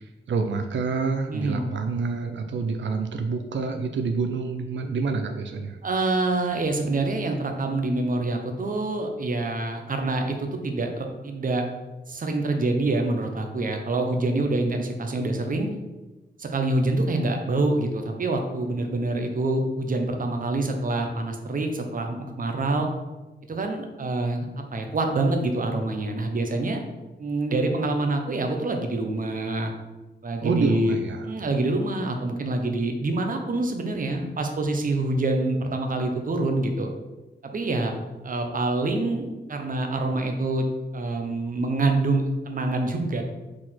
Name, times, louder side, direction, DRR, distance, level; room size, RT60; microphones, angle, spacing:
voice 1, 0.3-5.8 30.4-31.2, right 4 dB, 90° right, 6 dB, 0.5 m, -27 dB
voice 2, 1.3-1.7 5.8-11.6 12.1-15.7 16.4-22.9 23.5-26.8 27.2-29.7 30.2-31.0 31.2-36.9 37.4-37.9 38.2-40.6 40.9-43.2, right 2 dB, 45° right, 4 dB, 0.9 m, -26 dB
4.8 x 4.2 x 5.8 m, 1.1 s
wide cardioid pair, 160°, 19 cm